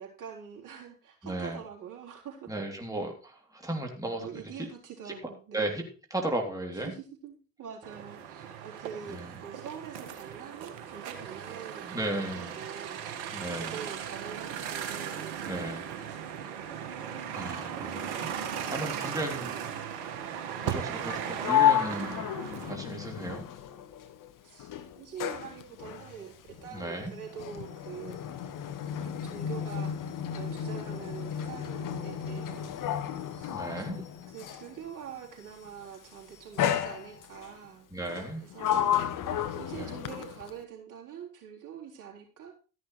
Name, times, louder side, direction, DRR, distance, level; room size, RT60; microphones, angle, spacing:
voice 1, 0.0-2.5 4.2-5.7 6.7-16.9 18.9-19.0 24.4-28.2 29.0-33.0 33.4-37.9 38.4-38.9 39.5-42.6, right 8 dB, 45° right, -1 dB, 4.0 m, -45 dB
voice 2, 1.2-1.6 2.5-4.3 4.5-4.7 5.5-5.8 6.1-6.9 9.1-9.3 11.8-12.5 13.3-13.8 15.5-15.8 17.3-18.3 18.7-19.6 20.6-23.4 26.7-27.1 33.5-34.0 37.9-38.5 39.7-39.9, right 1 dB, 10° right, 1 dB, 3.2 m, -35 dB
sound 1, 7.8-22.7, right 8 dB, 65° right, 1.8 m, -37 dB
Sliding door, 21.0-24.3 24.6-34.8 35.6-36.0 36.6-37.5 38.1-40.6, left 10 dB, 50° left, 1.3 m, -32 dB
13.5 x 11.0 x 3.3 m, 0.34 s
hypercardioid pair, 55°, 41 cm